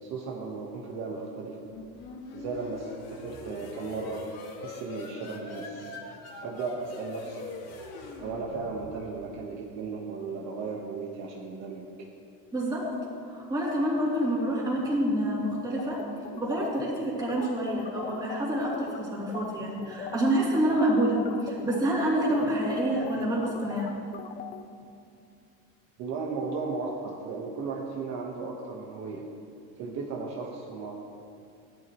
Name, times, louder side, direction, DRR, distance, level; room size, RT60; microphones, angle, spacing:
voice 1, 0.0-1.6 2.3-4.3 4.6-6.0 6.4-7.5 8.2-11.9 26.0-29.3 29.8-30.9, right 4 dB, 50° right, -2 dB, 1.4 m, -35 dB
sound 1, 1.7-9.3, left 3 dB, 45° left, 1.8 m, -42 dB
voice 2, 12.5-12.9 13.2-16.0 16.4-23.9, right 1 dB, 10° right, -7 dB, 3.0 m, -27 dB
sound 2, 15.8-19.0 19.3-19.5 19.8-24.6, left 8 dB, 25° left, 0.4 m, -40 dB
16.5 x 12.0 x 3.1 m, 2.5 s
cardioid pair, 160°, 35 cm